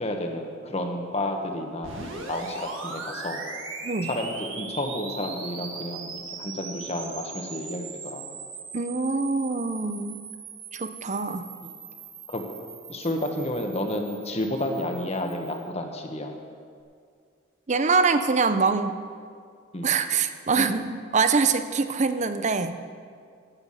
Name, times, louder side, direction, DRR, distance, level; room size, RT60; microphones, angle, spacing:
voice 1, 0.0-3.4 4.1-8.2 12.3-12.4 12.9-16.3 19.7-19.9 20.6-20.7, left 1 dB, 30° left, 3 dB, 1.3 m, -31 dB
sound 1, 1.8-15.7, right 4 dB, 80° right, 1.8 m, -39 dB
voice 2, 8.7-10.2 10.7-11.5 17.7-19.0 19.8-22.8, right 4 dB, 35° right, 10 dB, 0.6 m, -24 dB
14.0 x 9.3 x 5.7 m, 2.2 s
head